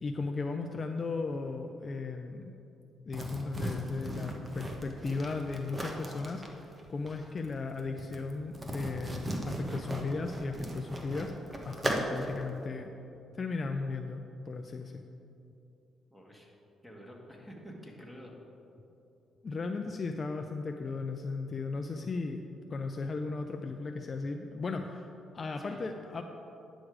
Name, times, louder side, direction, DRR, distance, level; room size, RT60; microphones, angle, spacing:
voice 1, 0.0-2.5 3.1-12.9 13.3-15.0 19.4-22.4 22.7-26.2, left 3 dB, 40° left, 4 dB, 0.4 m, -36 dB
sound 1, 3.1-12.4, right 1 dB, 25° right, 1.1 m, -37 dB
voice 2, 16.1-16.5 16.8-18.4 25.6-25.9, equal, ahead, -2 dB, 1.7 m, -49 dB
9.8 x 6.4 x 4.9 m, 2.8 s
cardioid pair, 90°, 0 cm